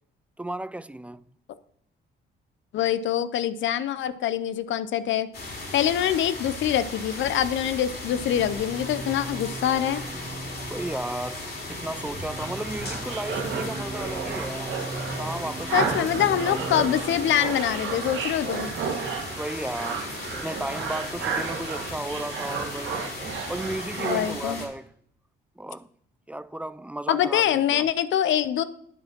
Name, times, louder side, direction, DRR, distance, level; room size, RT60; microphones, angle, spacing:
voice 1, 0.4-1.2 10.7-14.8 15.2-16.6 19.3-23.0 23.5-24.9 25.6-25.9 26.3-27.9, right 1 dB, 5° right, 0.3 m, -34 dB
voice 2, 2.7-5.3 5.7-10.0 15.7-18.7 24.0-24.6 27.1-28.6, left 10 dB, 70° left, 0.6 m, -24 dB
sound 1, 5.3-24.7, left 2 dB, 50° left, 3.1 m, -37 dB
sound 2, 8.1-19.1, right 2 dB, 30° right, 0.7 m, -39 dB
sound 3, 12.4-24.3, right 6 dB, 80° right, 1.5 m, -33 dB
9.6 x 5.1 x 5.9 m
cardioid pair, 90°, 20 cm